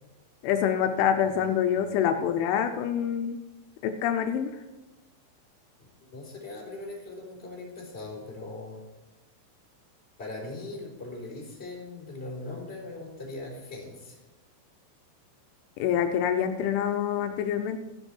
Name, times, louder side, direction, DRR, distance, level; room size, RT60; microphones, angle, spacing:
voice 1, 0.4-3.4 3.8-4.5 15.8-17.8, left 9 dB, 85° left, 6 dB, 3.1 m, -26 dB
voice 2, 1.3-1.9 6.0-8.8 10.2-14.2, left 2 dB, 15° left, -3 dB, 3.6 m, -40 dB
13.5 x 11.0 x 4.5 m, 1.1 s
omnidirectional pair, 5.5 m